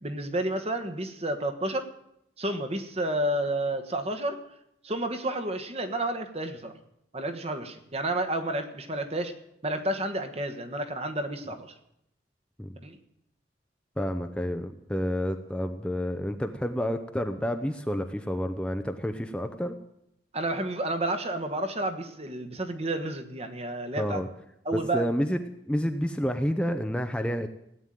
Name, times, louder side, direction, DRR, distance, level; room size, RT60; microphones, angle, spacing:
voice 1, 0.0-1.9 2.4-4.4 4.8-6.7 7.1-9.3 9.6-11.7 12.8-13.0 20.3-24.2 24.6-25.1, right 1 dB, 35° right, 8 dB, 1.4 m, -30 dB
voice 2, 14.0-19.8 24.0-24.3 24.7-25.4 25.7-27.5, equal, 5° left, 6 dB, 0.7 m, -29 dB
17.0 x 9.2 x 9.2 m, 0.79 s
head